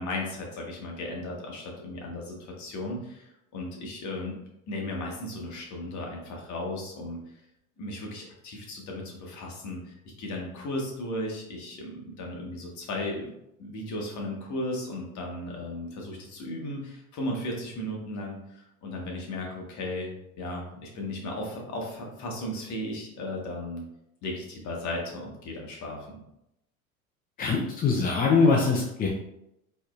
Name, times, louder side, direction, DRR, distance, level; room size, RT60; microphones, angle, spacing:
voice 1, 0.0-4.3 4.7-7.2 7.8-13.3 13.6-23.8 24.2-26.2, left 1 dB, 40° left, 0 dB, 1.3 m, -35 dB
voice 2, 27.4-29.1, left 4 dB, 20° left, -1 dB, 0.5 m, -23 dB
4.2 x 3.1 x 2.5 m, 0.82 s
hypercardioid pair, 80°, 44 cm